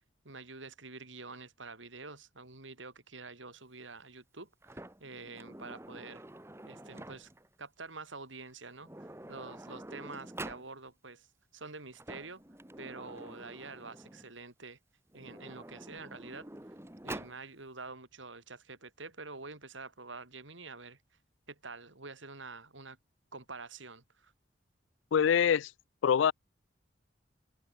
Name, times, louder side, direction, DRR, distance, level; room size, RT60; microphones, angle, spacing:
voice 1, 0.2-6.2 6.7-7.3 7.6-11.3 11.5-12.4 12.8-14.8 15.1-16.5 17.0-21.0 21.5-23.0 23.3-24.3, right 3 dB, 85° right, 4.5 m, -47 dB
Sliding door, 4.6-7.5 8.5-8.6 8.8-10.7 11.8-14.3 15.1-17.4, right 1 dB, 15° right, 1.4 m, -47 dB
voice 2, 25.1-25.7 26.0-26.3, left 8 dB, 80° left, 0.3 m, -24 dB
head